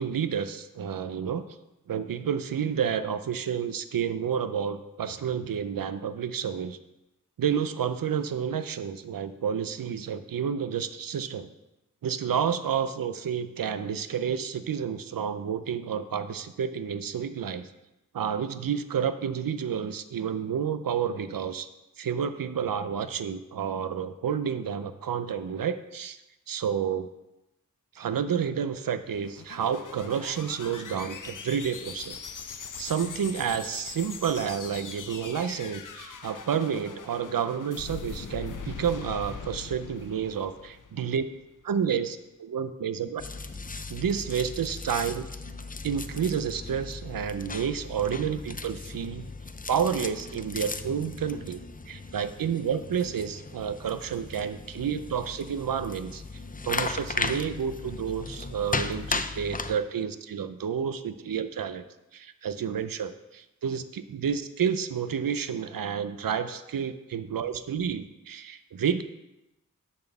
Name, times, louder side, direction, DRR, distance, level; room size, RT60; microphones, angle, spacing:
voice 1, 0.0-1.5 1.9-6.8 7.4-11.5 12.0-17.7 18.1-21.7 22.0-26.2 26.5-27.1 28.0-32.2 32.8-41.2 41.6-43.2 43.9-45.3 45.8-49.3 49.7-56.2 56.7-61.8 62.1-69.0, right 7 dB, 90° right, 11 dB, 0.6 m, -30 dB
sound 1, 29.0-41.4, left 6 dB, 70° left, 0.7 m, -41 dB
sound 2, 43.2-59.8, left 3 dB, 25° left, 0.5 m, -36 dB
10.5 x 4.3 x 6.8 m, 0.94 s
wide cardioid pair, 65°, 33 cm